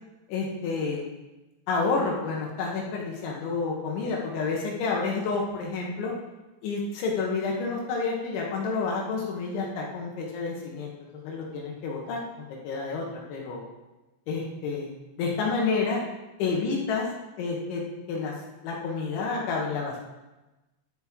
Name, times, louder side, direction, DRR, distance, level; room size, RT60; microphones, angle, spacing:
voice 1, 0.3-1.1 1.7-6.1 6.6-12.2 12.6-13.6 14.3-14.9 15.2-16.0 16.4-17.1 17.4-17.8 18.1-18.3 18.6-20.0, left 4 dB, 75° left, -2 dB, 3.5 m, -29 dB
14.5 x 6.5 x 3.6 m, 1.1 s
omnidirectional pair, 5.5 m